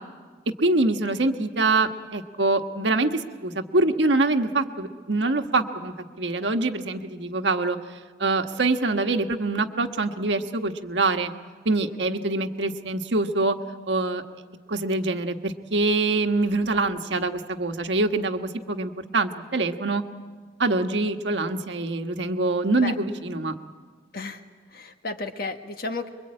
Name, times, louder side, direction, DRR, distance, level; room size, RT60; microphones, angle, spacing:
voice 1, 0.6-7.8 8.2-11.3 11.6-13.6 13.9-14.2 14.7-20.0 20.6-23.5, right 2 dB, 80° right, 6 dB, 1.3 m, -24 dB
voice 2, 24.7-26.1, left 3 dB, 55° left, 6 dB, 1.5 m, -32 dB
26.0 x 23.0 x 8.7 m, 1.5 s
head